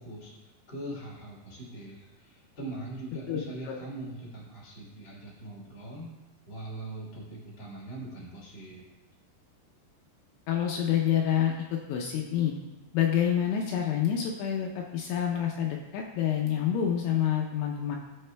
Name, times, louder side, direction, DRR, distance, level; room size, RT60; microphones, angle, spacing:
voice 1, 0.0-6.1 6.5-8.9, right 2 dB, 25° left, -6 dB, 2.7 m, -41 dB
voice 2, 3.3-3.8 10.5-12.5 12.9-18.0, left 9 dB, 80° left, 1 dB, 2.9 m, -28 dB
18.0 x 6.4 x 2.2 m, 1.1 s
omnidirectional pair, 5.5 m